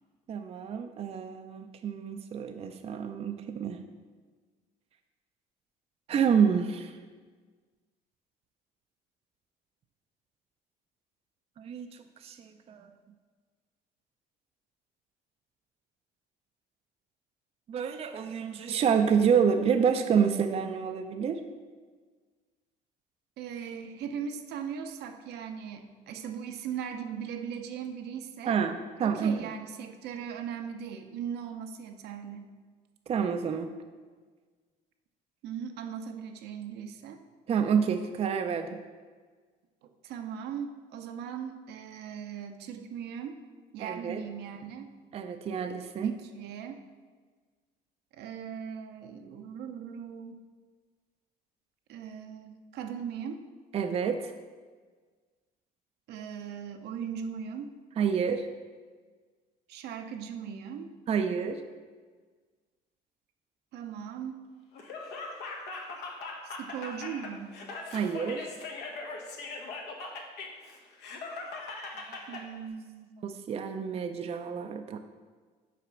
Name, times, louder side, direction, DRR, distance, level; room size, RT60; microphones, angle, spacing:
voice 1, 0.3-3.8 6.1-7.0 11.6-12.9 17.7-21.4 28.5-29.5 33.1-33.7 37.5-38.8 43.8-44.2 45.1-46.2 53.7-54.3 58.0-58.5 61.1-61.6 67.9-68.5 72.1-72.2 73.2-75.0, right 7 dB, 35° right, 7 dB, 0.4 m, -28 dB
voice 2, 23.4-28.6 29.0-32.5 35.4-37.2 39.8-43.4 43.7-44.9 46.0-46.8 48.1-50.4 51.9-53.4 56.1-57.7 59.7-61.0 63.7-64.5 66.4-67.6 72.3-73.1, right 7 dB, 75° right, 6 dB, 0.7 m, -39 dB
Laughter, 64.7-72.4, left 3 dB, 75° left, 1.1 m, -40 dB
5.8 x 4.2 x 6.1 m, 1.5 s
cardioid pair, 110°, 17 cm